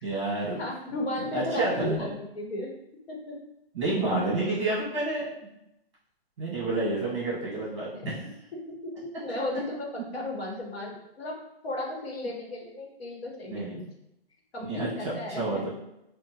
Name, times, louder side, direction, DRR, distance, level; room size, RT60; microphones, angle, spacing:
voice 1, 0.0-0.6 1.2-2.1 3.7-5.3 6.4-8.2 13.5-13.9 14.6-14.9 15.3-15.7, right 2 dB, 30° right, -8 dB, 1.1 m, -29 dB
voice 2, 0.6-2.7 3.1-3.4 8.7-11.4 11.6-13.8 14.5-15.6, left 1 dB, 75° left, -1 dB, 1.0 m, -35 dB
3.7 x 2.1 x 2.7 m, 0.86 s
hypercardioid pair, 180°, 31 cm